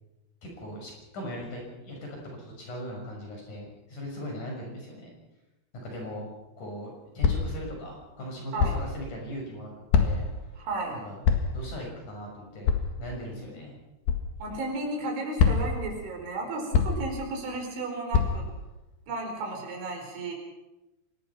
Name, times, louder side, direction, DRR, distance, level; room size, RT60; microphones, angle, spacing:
voice 1, 0.4-2.0 2.3-5.1 5.7-6.3 6.6-9.7 10.0-10.3 10.9-11.2 11.5-12.7 13.0-13.8, equal, 45° left, 0 dB, 7.5 m, -39 dB
sound 1, 7.2-7.6 8.6-8.9 9.9-10.4 11.2-11.6 12.7-13.0 14.1-14.3 15.4-15.8 16.7-17.2 18.1-18.5, left 6 dB, 65° left, 3.6 m, -24 dB
voice 2, 10.6-11.0 14.4-18.5 19.1-20.3, right 2 dB, 80° right, 1 dB, 7.0 m, -33 dB
25.0 x 20.0 x 6.0 m, 0.98 s
omnidirectional pair, 5.2 m